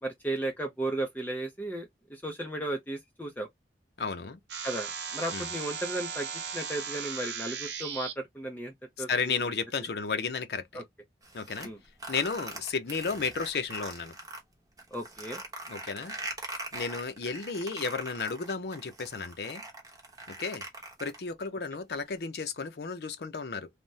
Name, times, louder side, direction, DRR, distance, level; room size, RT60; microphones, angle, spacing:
voice 1, 0.0-3.5 4.6-6.3 6.5-9.5 10.7-10.8 11.6-11.8 14.9-15.4, right 1 dB, 10° left, 0.5 m, -35 dB
voice 2, 4.0-4.4 5.3-5.5 9.1-10.8 11.3-11.7 12.1-14.1 15.7-16.1 16.7-19.6 20.3-20.6 21.0-23.7, left 5 dB, 65° left, 0.5 m, -33 dB
sound 1, 4.5-8.1, right 7 dB, 80° right, 0.7 m, -37 dB
sound 2, 11.2-14.4 14.8-21.4, right 2 dB, 20° right, 0.8 m, -42 dB
3.3 x 2.1 x 2.6 m
head